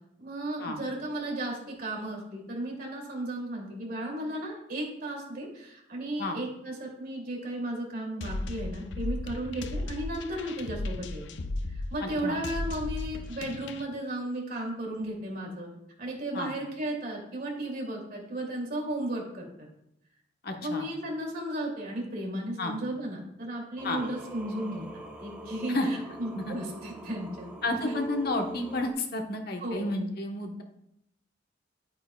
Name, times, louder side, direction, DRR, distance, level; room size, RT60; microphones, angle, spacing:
voice 1, 0.2-11.2 11.9-15.7 16.0-19.7 20.6-24.8 25.2-27.5 29.6-29.9, right 1 dB, 55° right, -1 dB, 2.8 m, -34 dB
sound 1, 8.2-13.9, left 2 dB, 80° left, 0.6 m, -36 dB
voice 2, 12.0-12.4 16.3-16.5 20.4-20.9 22.6-22.7 23.8-24.0 25.7-25.9 26.4-26.6 27.6-30.6, left 2 dB, 55° left, 3 dB, 1.2 m, -31 dB
Singing, 23.8-28.9, right 1 dB, 5° right, 0.9 m, -43 dB
11.5 x 8.7 x 2.4 m, 0.78 s
head